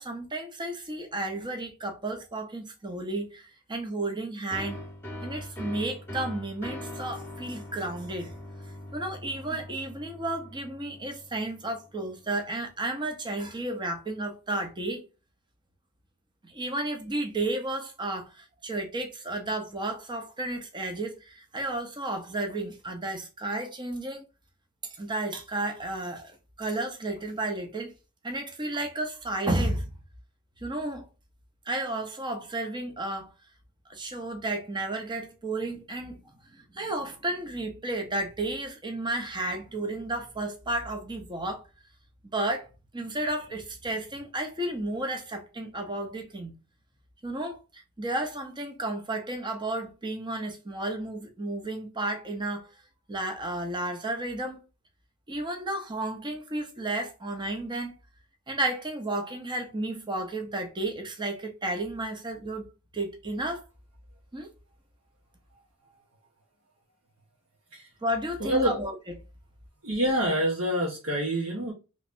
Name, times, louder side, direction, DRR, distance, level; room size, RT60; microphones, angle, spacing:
voice 1, 0.0-4.8 5.2-8.4 8.9-15.0 16.4-24.2 25.0-27.9 28.2-29.9 30.6-31.1 31.7-33.3 33.9-36.2 36.5-41.6 42.2-42.7 42.9-46.5 47.2-52.7 53.1-54.6 55.3-57.9 58.5-62.6 62.9-63.6 64.3-64.5 68.0-69.0, right 2 dB, 20° right, 0.8 m, -32 dB
sound 1, 4.5-12.0, left 1 dB, 10° left, 1.0 m, -41 dB
voice 2, 68.4-68.8 69.8-71.7, equal, 65° right, 1.2 m, -26 dB
3.2 x 3.1 x 2.5 m
head